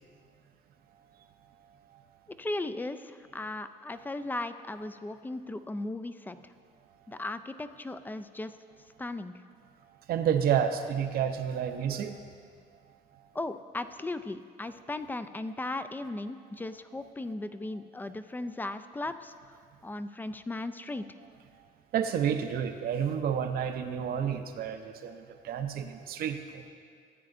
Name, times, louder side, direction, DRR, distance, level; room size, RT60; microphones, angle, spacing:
voice 1, 2.4-6.5 7.1-8.5 9.0-9.3 13.3-19.6 19.8-21.0, left 2 dB, 10° left, 11 dB, 0.3 m, -37 dB
voice 2, 10.1-12.2 21.9-26.7, right 8 dB, 65° right, 7 dB, 0.7 m, -30 dB
14.5 x 8.9 x 2.6 m, 2.2 s
cardioid pair, 110°, 17 cm